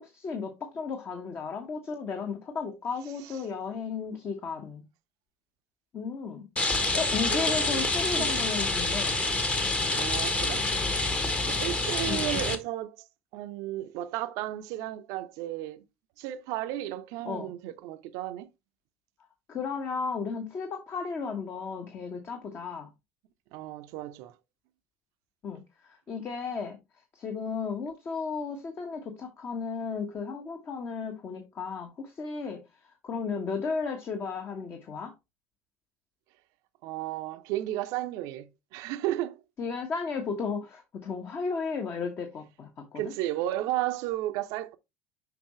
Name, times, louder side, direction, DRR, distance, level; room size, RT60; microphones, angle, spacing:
voice 1, 0.0-4.8 5.9-6.5 6.8-9.2 12.0-12.5 17.2-17.5 19.5-22.9 25.4-26.8 27.1-32.6 33.0-35.1 39.6-43.1, left 5 dB, 35° left, 1.3 m, -34 dB
Rain, 6.6-12.5, left 2 dB, 20° left, 1.1 m, -27 dB
voice 2, 6.8-8.4 9.9-10.7 11.4-13.1 13.3-15.8 16.2-18.5 23.5-24.3 36.8-39.4 42.9-44.8, right 14 dB, 55° right, 0.7 m, -34 dB
6.7 x 5.4 x 3.1 m
figure-of-eight pair, 65°, 6 cm